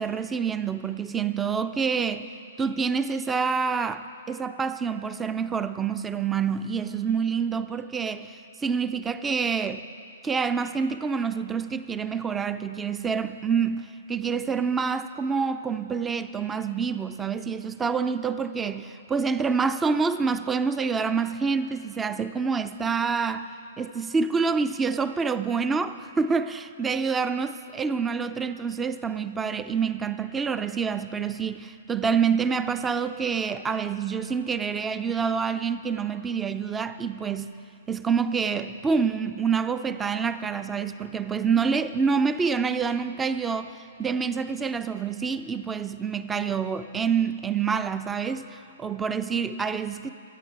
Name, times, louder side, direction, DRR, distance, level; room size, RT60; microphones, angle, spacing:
voice 1, 0.0-2.3 2.6-9.8 10.2-23.5 23.8-37.5 37.9-50.1, right 5 dB, 15° right, 12 dB, 0.4 m, -27 dB
24.5 x 9.2 x 4.8 m, 2.6 s
figure-of-eight pair, 115°, 0 cm